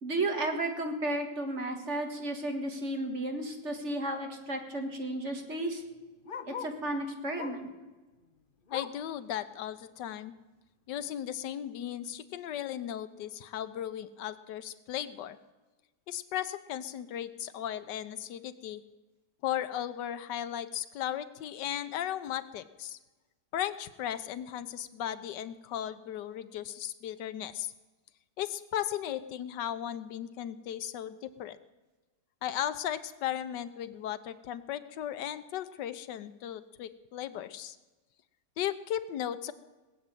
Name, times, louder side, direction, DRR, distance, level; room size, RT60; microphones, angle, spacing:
voice 1, 0.0-5.8 6.4-7.7, right 1 dB, 45° right, 4 dB, 2.0 m, -33 dB
Bark, 3.1-3.4 3.7-3.8 4.0-6.9 7.3-7.8 8.1-9.1 9.6-9.7 10.1-10.2 10.9-11.0, left 7 dB, 45° left, 0.7 m, -44 dB
voice 2, 8.7-10.4 10.9-15.4 16.1-18.8 19.4-23.0 23.5-27.7 28.4-31.6 32.4-37.8 38.6-39.5, left 11 dB, 90° left, 13 dB, 1.4 m, -36 dB
19.0 x 7.5 x 9.1 m, 1.2 s
omnidirectional pair, 1.8 m